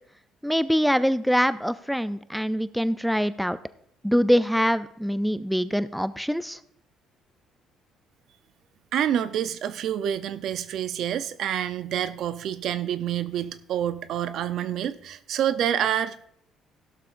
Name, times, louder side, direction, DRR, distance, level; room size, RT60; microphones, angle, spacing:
voice 1, 0.4-3.6 4.0-6.6, equal, ahead, 14 dB, 0.3 m, -24 dB
voice 2, 8.9-16.3, right 10 dB, 65° right, 13 dB, 0.6 m, -27 dB
16.0 x 12.0 x 2.5 m, 0.70 s
cardioid pair, 120°, 0 cm